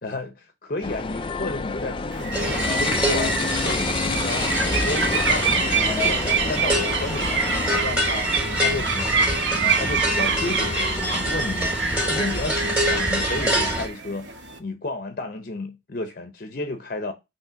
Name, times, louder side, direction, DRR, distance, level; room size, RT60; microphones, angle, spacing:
voice 1, 0.0-8.3 8.6-9.1 9.5-14.3 14.6-17.1, left 2 dB, 50° left, 0.7 m, -32 dB
sound 1, 0.8-7.8, left 4 dB, 30° left, 0.4 m, -29 dB
sound 2, 2.1-14.6, right 5 dB, 75° right, 1.1 m, -27 dB
sound 3, 2.3-13.9, equal, 5° right, 2.1 m, -26 dB
5.8 x 3.2 x 5.7 m
head